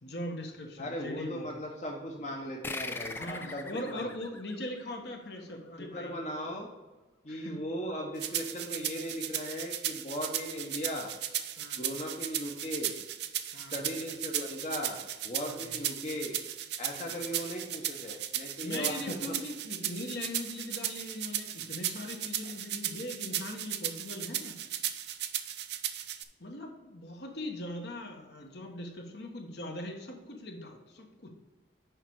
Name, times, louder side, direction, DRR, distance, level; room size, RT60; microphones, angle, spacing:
voice 1, 0.0-1.5 3.1-6.1 7.3-7.6 11.6-11.8 13.5-13.8 15.4-15.6 16.9-17.2 18.6-24.6 26.4-31.3, left 1 dB, 60° left, 2 dB, 1.2 m, -40 dB
voice 2, 0.8-4.4 5.8-6.7 7.2-11.1 11.8-13.0 13.7-16.4 16.8-19.4 22.4-22.5, equal, 35° left, -1 dB, 0.9 m, -38 dB
sound 1, 2.6-5.7, left 2 dB, 10° left, 0.3 m, -41 dB
sound 2, 8.2-26.2, right 11 dB, 60° right, 0.5 m, -36 dB
6.5 x 5.2 x 4.6 m, 1.2 s
head